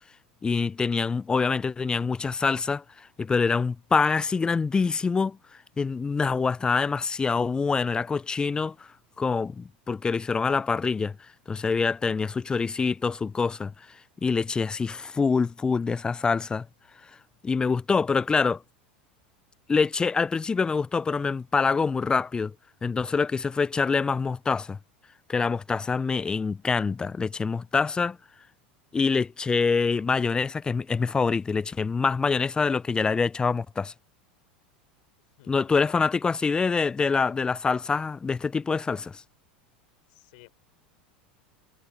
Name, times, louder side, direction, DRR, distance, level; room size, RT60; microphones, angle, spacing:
voice 1, 0.4-5.4 5.8-8.8 9.2-11.1 11.5-13.7 14.2-16.7 17.4-18.6 19.7-22.5 22.8-24.8 25.3-28.2 28.9-33.9 35.5-39.2, left 5 dB, 15° left, 0.3 m, -25 dB
voice 2, 35.4-36.1 40.1-40.5, left 25 dB, 65° left, 3.7 m, -54 dB
hypercardioid pair, 90°, 5 cm